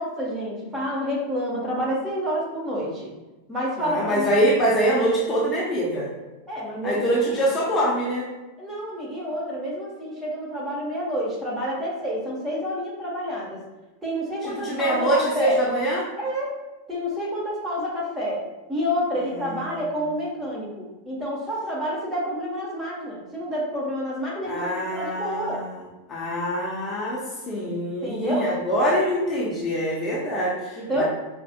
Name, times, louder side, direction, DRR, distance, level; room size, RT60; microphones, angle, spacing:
voice 1, 0.0-3.1 3.5-4.3 6.5-7.3 8.6-13.6 14.0-15.6 16.2-16.5 16.9-18.4 18.7-25.6 28.0-28.5 30.8-31.0, equal, 15° right, -5 dB, 1.0 m, -28 dB
voice 2, 3.8-6.1 6.8-8.3 14.4-16.1 19.3-19.8 24.4-25.7 26.1-31.0, equal, 20° left, -5 dB, 0.8 m, -24 dB
4.8 x 2.5 x 2.2 m, 1.1 s
figure-of-eight pair, 90°, 0 cm